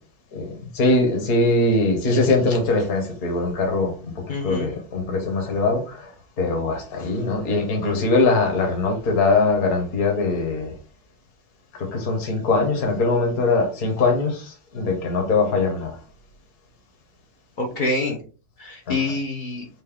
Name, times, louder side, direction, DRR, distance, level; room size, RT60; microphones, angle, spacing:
voice 1, 0.3-10.7 11.8-16.0 18.9-19.0, left 3 dB, 50° left, 1.6 m, -22 dB
voice 2, 4.3-4.7 17.6-18.2 18.6-19.7, left 2 dB, 90° left, 0.4 m, -26 dB
5.4 x 2.6 x 3.5 m
omnidirectional pair, 2.1 m